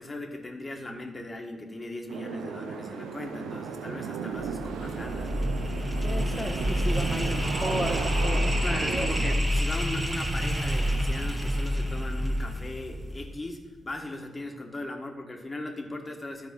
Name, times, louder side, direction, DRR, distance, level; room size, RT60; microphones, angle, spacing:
voice 1, 0.0-5.5 8.6-16.5, left 2 dB, 30° left, 3 dB, 1.6 m, -38 dB
sound 1, 2.1-9.4, right 6 dB, 85° right, 0.6 m, -35 dB
sound 2, 4.3-13.5, equal, 25° right, 1.9 m, -28 dB
voice 2, 6.0-9.3, left 1 dB, 10° left, 5 dB, 0.5 m, -34 dB
12.5 x 4.1 x 5.4 m, 1.3 s
supercardioid pair, 50°, 0 cm